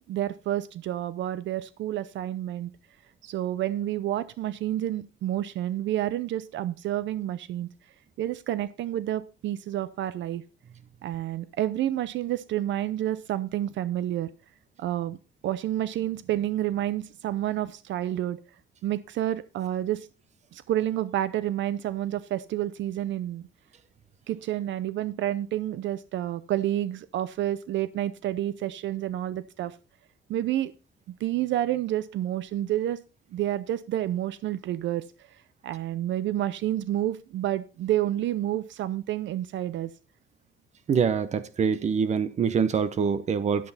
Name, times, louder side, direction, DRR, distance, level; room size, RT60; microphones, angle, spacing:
voice 1, 0.1-2.7 3.2-7.7 8.2-10.4 11.0-14.3 14.8-15.2 15.4-18.4 18.8-20.1 20.5-23.5 24.3-29.7 30.3-30.7 31.2-33.0 33.3-35.0 35.6-39.9, right 12 dB, 70° right, 0.6 m, -29 dB
voice 2, 40.9-43.7, right 6 dB, 35° right, 0.7 m, -25 dB
11.0 x 7.8 x 4.1 m
cardioid pair, 160°, 20 cm